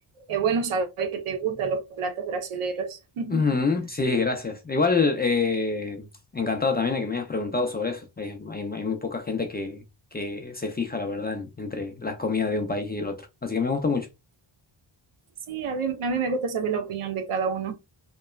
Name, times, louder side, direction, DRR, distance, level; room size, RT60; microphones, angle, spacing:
voice 1, 0.3-3.5 15.5-17.7, right 5 dB, 80° right, 0.7 m, -28 dB
voice 2, 3.3-6.1 6.3-9.8 10.1-14.1, left 4 dB, 20° left, 0.3 m, -27 dB
3.0 x 2.1 x 2.2 m
wide cardioid pair, 115°, 50 cm